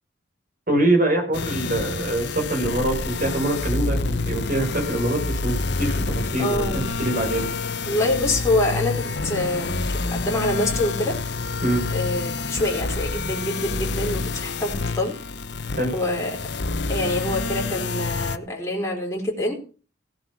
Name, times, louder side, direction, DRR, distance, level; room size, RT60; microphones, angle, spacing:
voice 1, 0.7-6.7 7.0-7.5 11.6-11.8 15.8-15.9, right 1 dB, 45° right, 4 dB, 5.7 m, -24 dB
sound 1, 1.3-18.4, left 3 dB, 65° left, 0.9 m, -28 dB
voice 2, 6.4-6.8 7.9-11.2 11.9-15.2 15.9-16.4 16.9-19.5, left 1 dB, 15° left, -1 dB, 4.0 m, -25 dB
16.5 x 7.6 x 6.0 m, 0.36 s
head